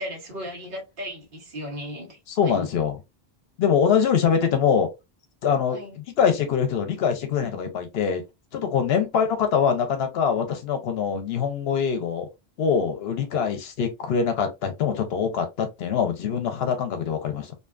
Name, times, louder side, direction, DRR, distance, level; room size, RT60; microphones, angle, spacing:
voice 1, 0.0-2.7 5.7-6.0 8.9-9.1, equal, 60° right, 1.1 m, -36 dB
voice 2, 2.3-3.0 3.6-4.9 5.4-8.2 8.5-12.3 12.6-17.5, left 7 dB, 75° left, 0.8 m, -24 dB
2.6 x 2.3 x 2.3 m
omnidirectional pair, 1.0 m